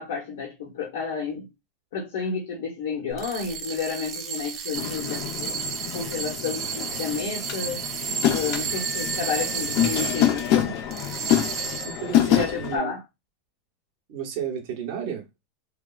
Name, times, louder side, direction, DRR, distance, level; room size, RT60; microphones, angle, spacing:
voice 1, 0.0-1.5 1.9-5.5 5.9-7.8 8.3-10.7 12.3-13.0, left 5 dB, 70° left, 0.9 m, -31 dB
sound 1, 3.1-10.5 10.9-12.1, right 7 dB, 20° right, 0.4 m, -32 dB
sound 2, 4.7-12.8, left 11 dB, 40° left, 0.5 m, -26 dB
voice 2, 11.8-13.0 14.1-15.3, right 7 dB, 40° right, 0.8 m, -32 dB
3.3 x 2.0 x 2.3 m
supercardioid pair, 180°, 0 cm